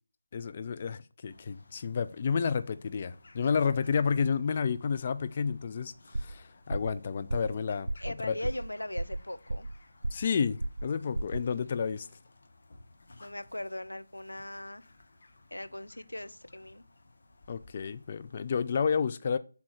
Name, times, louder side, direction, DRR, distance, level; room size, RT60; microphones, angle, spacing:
voice 1, 0.3-8.4 10.1-12.1 17.5-19.4, left 6 dB, 35° left, 0.3 m, -31 dB
sound 1, 1.3-18.8, left 2 dB, 50° left, 1.3 m, -58 dB
sound 2, 6.1-6.4 6.7-7.0 7.3-7.6 7.9-8.1 8.4-8.7 9.0-9.8 10.0-10.3 10.6-10.9 11.1-11.4, right 2 dB, 70° right, 0.6 m, -33 dB
voice 2, 8.0-9.7 13.2-14.9 15.5-16.8, left 1 dB, 90° left, 0.7 m, -39 dB
6.2 x 4.2 x 6.2 m
figure-of-eight pair, 160°, 0 cm